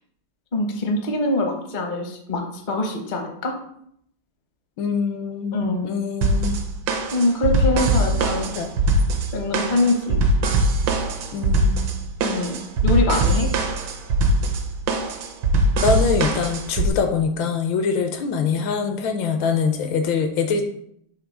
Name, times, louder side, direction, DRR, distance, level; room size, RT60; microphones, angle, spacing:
voice 1, 0.5-2.4 2.7-3.5 5.5-6.0 7.1-8.5 9.3-10.2 12.2-13.5, left 2 dB, 45° left, 2 dB, 0.6 m, -23 dB
voice 2, 4.8-5.6 5.8-6.6 8.6-8.7 11.3-11.9 15.8-20.6, left 5 dB, 75° left, 6 dB, 1.4 m, -23 dB
sound 1, 6.2-16.9, right 2 dB, 70° right, 1.4 m, -21 dB
5.9 x 3.2 x 5.3 m, 0.69 s
omnidirectional pair, 2.3 m